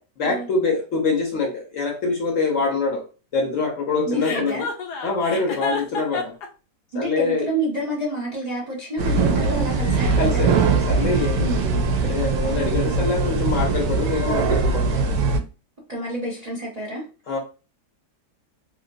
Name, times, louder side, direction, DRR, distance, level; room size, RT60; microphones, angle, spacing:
voice 1, 0.2-3.0 3.3-4.6 5.0-6.3 6.9-7.5 10.2-15.1 17.3-17.4, left 4 dB, 60° left, 0 dB, 1.0 m, -25 dB
voice 2, 4.0-4.7 5.3-5.4 6.9-10.5 11.4-11.6 15.9-17.0, right 1 dB, 35° right, -4 dB, 0.6 m, -29 dB
Chuckle chortle, 4.2-6.5, left 4 dB, 80° left, 1.3 m, -29 dB
sound 1, 9.0-15.4, right 4 dB, 75° right, 1.1 m, -21 dB
3.0 x 2.8 x 2.5 m, 0.33 s
omnidirectional pair, 1.7 m